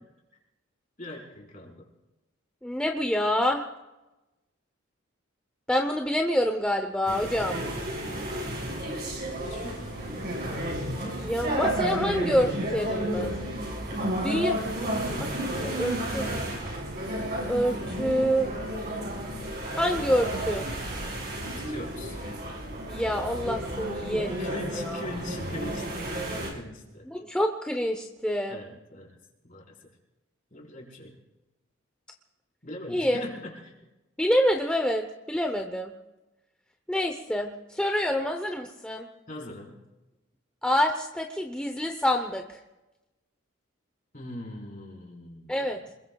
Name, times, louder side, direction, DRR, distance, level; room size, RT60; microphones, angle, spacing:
voice 1, 1.0-1.9 9.4-10.1 13.9-14.2 21.4-22.3 24.1-27.1 28.5-29.2 29.4-29.7 30.5-31.2 32.6-33.7 39.3-39.8 44.1-45.7, left 1 dB, 40° left, -2 dB, 4.5 m, -41 dB
voice 2, 2.6-3.6 5.7-7.6 11.2-13.3 14.2-14.6 15.4-16.3 17.5-18.5 19.8-20.7 22.9-24.3 24.8-25.0 27.1-28.6 32.9-33.2 34.2-35.9 36.9-39.1 40.6-42.4 45.5-45.8, equal, 5° left, 3 dB, 0.8 m, -27 dB
sound 1, 7.1-26.5, right 1 dB, 50° right, 7.0 m, -32 dB
27.5 x 21.5 x 2.4 m, 1.0 s
head